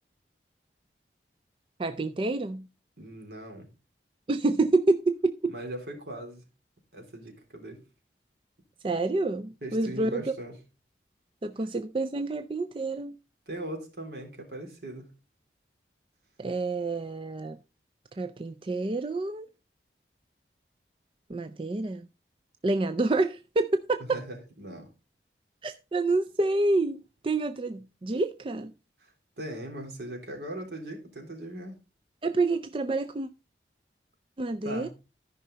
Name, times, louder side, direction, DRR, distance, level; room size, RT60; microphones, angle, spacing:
voice 1, 1.8-2.7 4.3-5.5 8.8-10.2 11.4-13.1 16.4-17.6 18.2-19.5 21.3-22.1 22.6-24.2 25.6-28.7 32.2-33.3 34.4-34.9, right 2 dB, 30° right, 0.4 m, -28 dB
voice 2, 3.0-3.7 5.5-6.4 6.9-7.8 9.6-10.5 13.5-15.1 24.0-24.9 29.0-31.8 34.6-34.9, right 1 dB, 70° right, 3.4 m, -39 dB
13.5 x 5.6 x 3.9 m
head